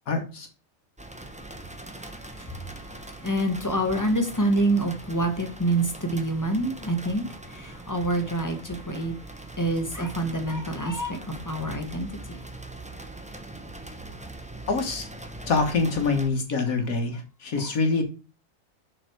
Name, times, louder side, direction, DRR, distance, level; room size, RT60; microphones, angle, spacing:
voice 1, 0.1-0.5 14.7-15.1 15.5-18.0, left 4 dB, 85° left, 1.9 m, -25 dB
sound 1, 1.0-16.3, right 2 dB, 5° right, 0.8 m, -42 dB
voice 2, 3.2-9.1 9.6-12.1 17.6-17.7, right 1 dB, 15° left, 1.5 m, -27 dB
6.6 x 5.8 x 4.6 m
omnidirectional pair, 1.4 m